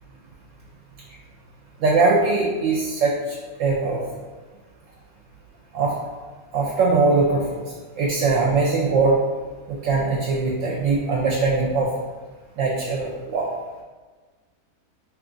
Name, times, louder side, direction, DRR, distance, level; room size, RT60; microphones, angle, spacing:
voice 1, 1.8-4.0 5.7-5.9 6.5-7.6 8.0-9.2 9.7-11.9 12.6-13.5, right 3 dB, 70° right, -2 dB, 0.9 m, -21 dB
3.0 x 2.4 x 3.7 m, 1.3 s
omnidirectional pair, 1.5 m